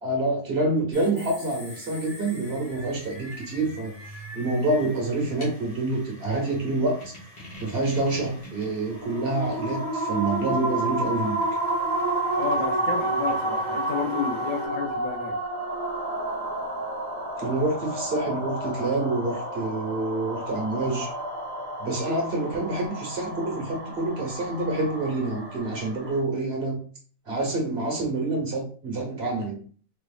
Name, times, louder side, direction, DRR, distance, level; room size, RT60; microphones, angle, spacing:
voice 1, 0.0-7.1 7.6-11.4 17.4-21.1 21.8-26.8 27.3-29.6, right 2 dB, 50° right, 0 dB, 1.5 m, -27 dB
sound 1, 0.9-14.7, left 1 dB, 45° left, 1.7 m, -45 dB
sound 2, 8.9-26.2, right 1 dB, 30° right, 1.2 m, -30 dB
voice 2, 12.4-15.4, left 5 dB, 75° left, 3 dB, 1.2 m, -31 dB
4.3 x 3.2 x 2.4 m, 0.42 s
omnidirectional pair, 1.4 m